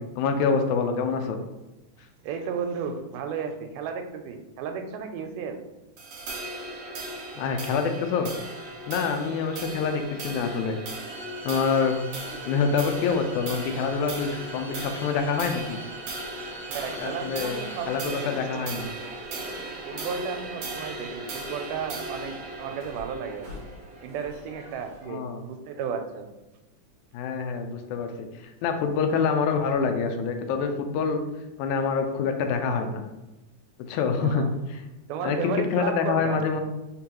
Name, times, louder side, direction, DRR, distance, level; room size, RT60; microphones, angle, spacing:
voice 1, 0.0-1.4 7.4-8.3 8.9-10.8 11.4-12.0 12.5-15.8 17.0-18.9 25.1-25.4 27.1-31.2 31.6-33.0 33.9-34.8 35.2-36.6, left 5 dB, 80° left, 6 dB, 1.9 m, -26 dB
voice 2, 2.2-5.6 16.7-18.7 19.9-23.5 24.0-26.3 34.2-34.5 35.1-36.4, right 6 dB, 85° right, 6 dB, 2.1 m, -33 dB
sound 1, 6.0-24.6, right 2 dB, 65° right, 1.7 m, -38 dB
sound 2, 10.9-18.0, right 2 dB, 55° left, 0.6 m, -44 dB
sound 3, 12.2-25.1, equal, 50° right, 1.3 m, -48 dB
4.6 x 3.8 x 2.9 m, 1.0 s
omnidirectional pair, 3.7 m